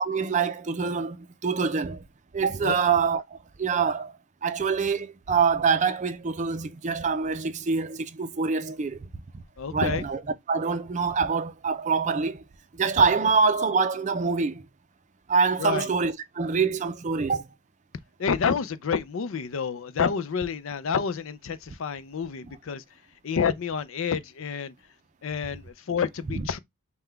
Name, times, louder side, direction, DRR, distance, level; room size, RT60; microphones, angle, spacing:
voice 1, 0.0-2.0 2.3-4.1 4.4-9.1 9.3-9.4 9.7-10.2 10.5-12.4 12.7-14.7 15.3-17.5 26.3-26.4, right 5 dB, 35° right, 0.4 m, -25 dB
voice 2, 9.6-10.0 15.6-15.9 18.2-22.8 23.2-24.7 25.2-26.6, left 6 dB, 65° left, 0.4 m, -29 dB
5.6 x 2.2 x 3.3 m
head